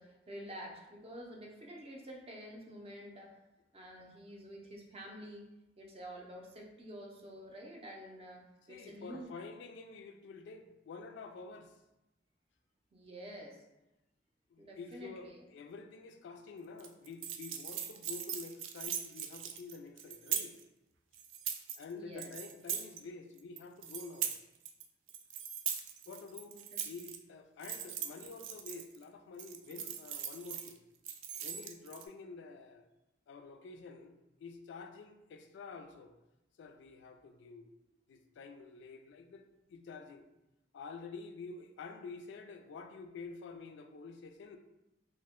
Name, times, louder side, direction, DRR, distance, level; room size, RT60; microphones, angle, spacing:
voice 1, 0.0-3.4 3.7-5.5 5.8-9.3 12.9-13.6 14.6-15.4 21.9-22.3 26.5-26.6, equal, 30° right, 0 dB, 0.5 m, -49 dB
voice 2, 8.7-11.8 14.5-20.6 21.8-24.4 26.1-26.6 26.8-30.8 31.4-32.8 33.3-36.1 36.6-37.7 38.1-39.4 39.7-40.3 40.7-44.6, left 4 dB, 65° left, 6 dB, 0.3 m, -48 dB
sound 1, 16.8-20.6 21.1-21.8 22.2-23.0 23.4-24.8 25.1-27.2 27.6-29.0 29.4-30.7 31.0-32.0, right 9 dB, 85° right, 0.3 m, -40 dB
2.8 x 2.1 x 3.5 m, 0.94 s
head